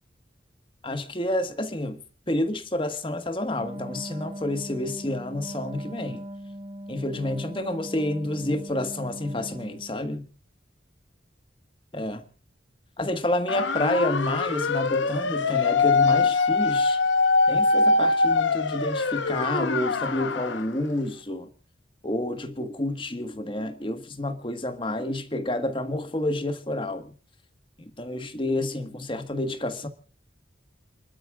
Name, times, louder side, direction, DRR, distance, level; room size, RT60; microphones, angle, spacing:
voice 1, 0.8-2.0 2.3-6.2 6.9-10.2 11.9-12.2 13.0-17.0 17.5-21.5 22.0-27.1 27.8-29.9, left 1 dB, 25° left, 1.6 m, -29 dB
Wind instrument woodwind instrument, 3.5-10.0, equal, 25° right, 1.4 m, -39 dB
sound 1, 13.5-20.7, left 3 dB, 85° left, 1.0 m, -23 dB
30.0 x 12.5 x 2.4 m
head